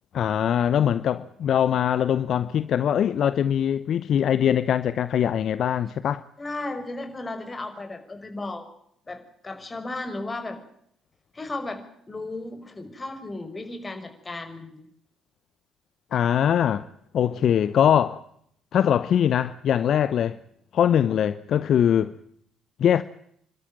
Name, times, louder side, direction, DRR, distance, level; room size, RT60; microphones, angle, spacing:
voice 1, 0.1-6.2 16.1-16.9 17.1-18.2 18.7-20.4 20.7-22.1 22.8-23.0, left 9 dB, 60° left, 0.8 m, -22 dB
voice 2, 6.4-8.7 9.1-10.6 11.3-11.8 12.1-14.9, left 2 dB, 25° left, 5.7 m, -35 dB
28.5 x 13.0 x 9.0 m
hypercardioid pair, 50°, 0 cm